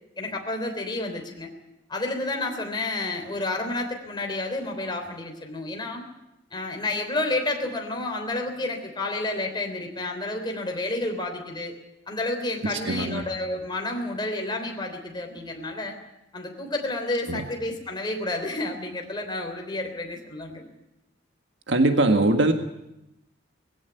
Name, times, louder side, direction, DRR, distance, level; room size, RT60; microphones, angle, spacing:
voice 1, 0.2-1.5 1.9-6.0 6.5-11.7 12.1-16.0 16.3-20.6, left 2 dB, 25° left, 2 dB, 3.4 m, -30 dB
voice 2, 12.6-13.2 17.3-17.4 21.7-22.5, right 2 dB, 80° right, 6 dB, 1.6 m, -21 dB
20.0 x 16.0 x 9.3 m, 0.88 s
head